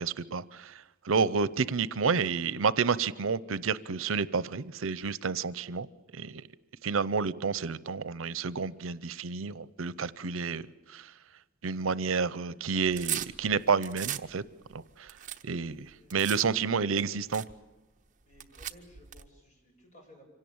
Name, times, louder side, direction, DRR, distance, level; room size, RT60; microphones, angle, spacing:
voice 1, 0.0-5.9 6.1-6.5 6.8-11.1 11.6-14.4 14.7-15.1 15.4-17.4, right 5 dB, 85° right, 19 dB, 0.7 m, -30 dB
sound 1, 12.7-14.3 14.7-16.4 17.0-17.1 17.3-17.5 18.3-19.3, right 11 dB, 40° right, 0.9 m, -37 dB
voice 2, 15.9-16.2 16.5-17.2 18.2-20.2, equal, 35° left, 1 dB, 7.4 m, -56 dB
25.5 x 17.5 x 8.7 m, 1.1 s
head